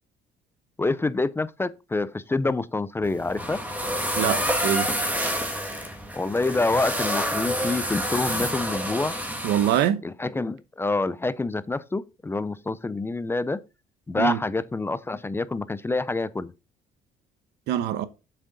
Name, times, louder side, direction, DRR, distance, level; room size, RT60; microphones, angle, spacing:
voice 1, 0.8-3.6 6.1-9.2 10.0-13.6 14.1-16.5, left 3 dB, 15° left, 0.5 m, -27 dB
sound 1, 3.0-9.9, equal, 10° right, 2.0 m, -28 dB
voice 2, 4.2-4.9 9.4-10.0 14.2-14.4 17.7-18.1, right 10 dB, 80° right, 0.9 m, -24 dB
7.7 x 6.4 x 3.9 m
cardioid pair, 110°, 17 cm